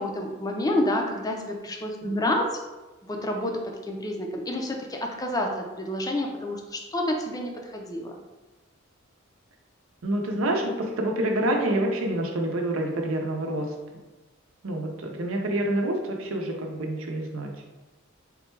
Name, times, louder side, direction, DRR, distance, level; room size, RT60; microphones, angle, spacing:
voice 1, 0.0-2.6 3.1-8.2, left 1 dB, 20° left, 2 dB, 0.5 m, -29 dB
voice 2, 10.0-13.7 14.6-17.5, right 1 dB, 85° right, 2 dB, 0.6 m, -27 dB
3.7 x 2.2 x 4.4 m, 1.2 s
head